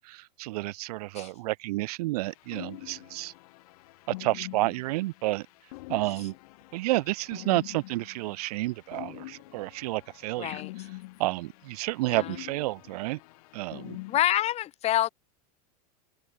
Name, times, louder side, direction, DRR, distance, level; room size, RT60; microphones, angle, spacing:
voice 1, 0.0-3.3 4.2-5.5 5.9-6.3 6.7-10.6 11.2-13.2 13.5-14.0, right 20 dB, 65° right, 0.7 m, -30 dB
sound 1, 2.2-14.2, left 21 dB, 60° left, 2.8 m, -45 dB
voice 2, 10.4-10.9 12.0-12.4 14.1-15.1, left 13 dB, 30° left, 4.8 m, -27 dB
open air
supercardioid pair, 155°, 21 cm